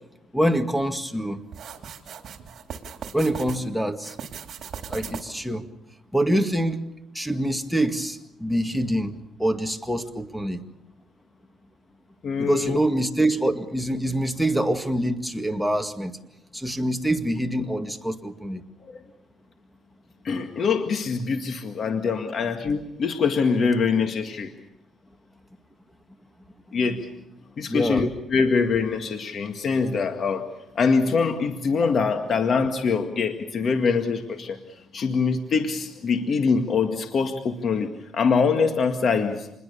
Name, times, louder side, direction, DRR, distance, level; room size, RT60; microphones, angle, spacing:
voice 1, 0.3-1.4 3.1-4.2 4.9-5.7 6.1-6.8 7.1-9.1 9.4-10.6 12.4-16.1 16.5-18.6 27.7-28.0, right 1 dB, ahead, 8 dB, 2.0 m, -25 dB
sound 1, 1.5-3.6 4.0-5.5, right 7 dB, 60° right, 3.3 m, -38 dB
voice 2, 12.2-12.8 18.8-19.0 20.2-24.5 26.7-27.1 27.6-30.5 30.8-34.6 34.9-39.5, left 5 dB, 55° left, 6 dB, 1.9 m, -24 dB
27.5 x 21.5 x 6.9 m, 0.86 s
cardioid pair, 90°, 0 cm